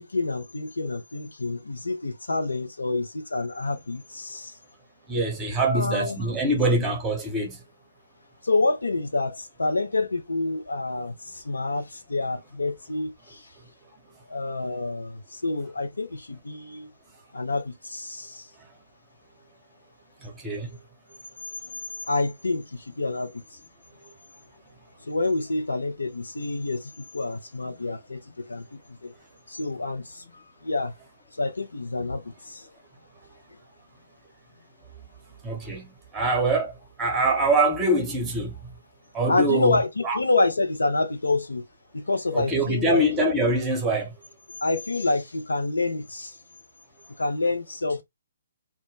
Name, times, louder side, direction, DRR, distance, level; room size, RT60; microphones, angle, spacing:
voice 1, 0.0-4.5 5.6-6.2 8.4-13.5 14.3-16.9 17.3-18.5 21.6-21.8 22.1-23.4 25.0-29.1 29.5-30.9 31.4-32.7 39.3-41.6 41.9-43.0 44.6-46.4 47.2-48.0, left 2 dB, 75° left, 0.5 m, -28 dB
voice 2, 5.1-7.6 20.2-20.7 35.4-35.9 36.1-36.7 37.0-38.5 39.1-39.8 40.0-40.2 42.3-44.1, right 2 dB, 15° right, 0.8 m, -24 dB
2.2 x 2.0 x 3.1 m
figure-of-eight pair, 135°, 0 cm